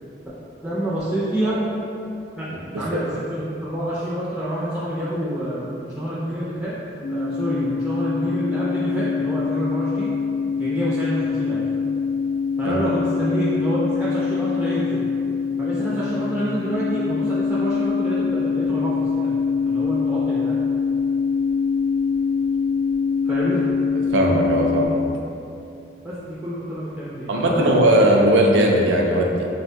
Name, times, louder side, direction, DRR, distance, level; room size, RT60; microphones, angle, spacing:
voice 1, 0.6-1.6 2.4-6.7 7.1-10.1 10.6-11.6 12.6-15.1 15.6-19.3 19.6-20.6 23.3-23.6 26.0-27.8, right 1 dB, 5° right, -10 dB, 0.3 m, -27 dB
sound 1, 7.0-24.9, left 5 dB, 70° left, 0.4 m, -24 dB
voice 2, 24.1-25.0 27.3-29.5, right 1 dB, 85° right, 0 dB, 0.4 m, -18 dB
3.7 x 2.1 x 2.6 m, 2.7 s
head